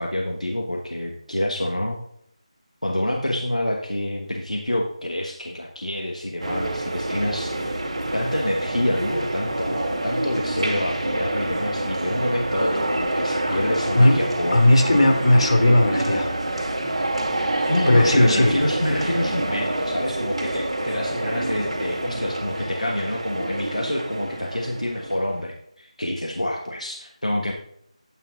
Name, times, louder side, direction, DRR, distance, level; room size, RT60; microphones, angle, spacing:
voice 1, 0.0-2.0 2.8-7.8 8.1-14.9 17.7-27.5, left 1 dB, 90° left, 1 dB, 1.3 m, -27 dB
sound 1, 6.4-25.4, right 1 dB, 60° right, 2.5 m, -27 dB
voice 2, 14.5-16.3 17.9-18.5, left 1 dB, 60° left, 1 dB, 2.6 m, -16 dB
12.5 x 9.0 x 2.4 m, 0.72 s
figure-of-eight pair, 165°, 4 cm